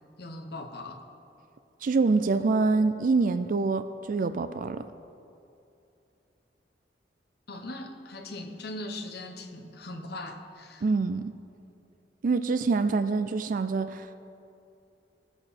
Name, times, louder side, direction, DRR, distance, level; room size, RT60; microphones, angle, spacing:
voice 1, 0.2-1.0 7.5-10.8, left 1 dB, 65° left, 4 dB, 1.2 m, -40 dB
voice 2, 1.8-4.8 10.8-11.3 12.2-14.2, right 4 dB, 50° right, 11 dB, 0.4 m, -25 dB
20.0 x 7.8 x 4.2 m, 2.6 s
head